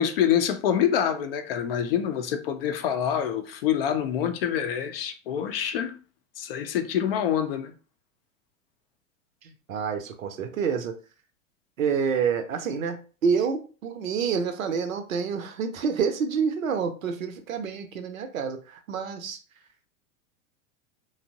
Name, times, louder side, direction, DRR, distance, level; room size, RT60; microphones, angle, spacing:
voice 1, 0.0-5.9 6.4-7.7, left 9 dB, 45° left, 0.4 m, -26 dB
voice 2, 9.4-10.9 11.8-19.4, right 6 dB, 75° right, 0.6 m, -28 dB
2.8 x 2.0 x 2.6 m
figure-of-eight pair, 90°, 41 cm